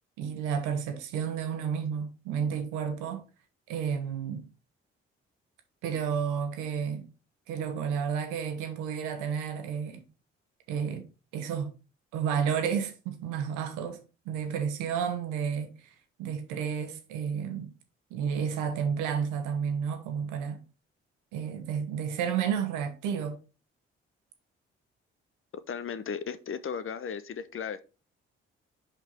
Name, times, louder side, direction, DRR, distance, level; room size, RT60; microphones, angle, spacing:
voice 1, 0.2-3.2 3.7-4.4 5.8-7.1 7.5-10.0 10.7-11.0 11.3-11.7 12.1-15.9 16.2-17.7 18.1-20.6 21.3-23.4, right 7 dB, 75° right, 1.3 m, -31 dB
voice 2, 25.7-27.8, left 6 dB, 40° left, 0.8 m, -35 dB
5.2 x 5.2 x 4.4 m
hypercardioid pair, 45°, 31 cm